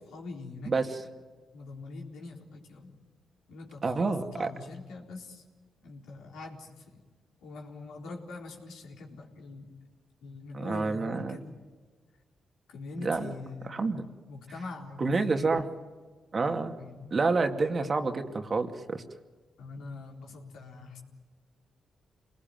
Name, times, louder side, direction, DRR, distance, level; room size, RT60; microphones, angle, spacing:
voice 1, 0.0-0.7 1.5-3.0 3.5-5.4 5.8-7.0 7.4-9.7 10.2-11.5 12.7-13.9 14.3-15.3 16.8-17.2 19.6-21.0, left 3 dB, 85° left, 0 dB, 4.0 m, -43 dB
voice 2, 0.7-1.0 3.8-4.5 10.5-11.4 13.0-13.3 13.7-14.0 15.0-15.6 16.3-16.7 17.1-19.0, right 4 dB, 45° right, 5 dB, 2.3 m, -28 dB
27.5 x 20.0 x 9.3 m, 1.4 s
supercardioid pair, 55°, 0 cm